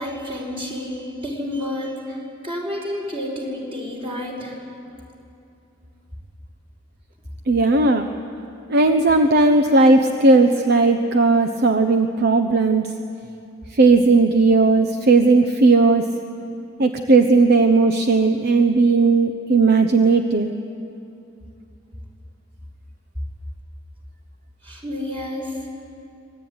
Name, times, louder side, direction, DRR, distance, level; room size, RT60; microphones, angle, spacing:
voice 1, 0.0-2.2 2.4-4.5 24.6-25.5, left 1 dB, 30° right, -1 dB, 5.4 m, -30 dB
voice 2, 7.5-8.1 8.7-12.9 13.7-16.0 16.8-20.5, right 3 dB, 55° right, 6 dB, 0.9 m, -16 dB
25.5 x 18.5 x 9.6 m, 2.7 s
head